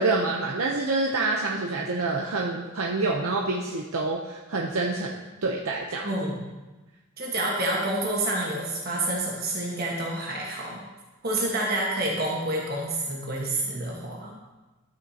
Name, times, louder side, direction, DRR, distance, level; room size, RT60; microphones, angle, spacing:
voice 1, 0.0-6.1, right 3 dB, 85° right, -1 dB, 0.8 m, -27 dB
voice 2, 6.0-6.4 7.2-10.8 11.2-14.3, right 1 dB, 45° right, -2 dB, 1.4 m, -28 dB
12.5 x 7.9 x 2.8 m, 1.2 s
head